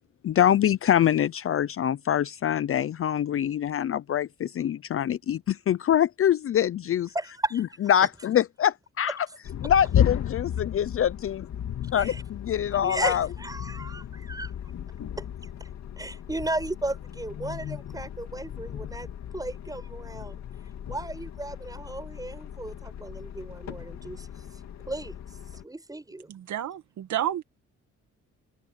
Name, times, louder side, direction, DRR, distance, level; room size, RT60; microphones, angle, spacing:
voice 1, 0.2-7.1 7.6-9.3 9.6-11.4 11.9-13.3, left 10 dB, 45° left, 0.6 m, -24 dB
voice 2, 7.1-7.6 12.0-12.2 12.8-14.5 15.2-15.3 15.6-15.7 16.0-19.1 19.3-20.4 20.9-24.3 24.9-25.1 25.6-26.3, right 2 dB, 10° right, 7.6 m, -34 dB
sound 1, 9.4-25.6, left 10 dB, 65° left, 2.6 m, -34 dB
voice 3, 26.3-27.4, right 11 dB, 70° right, 2.0 m, -30 dB
open air
cardioid pair, 90°, 30 cm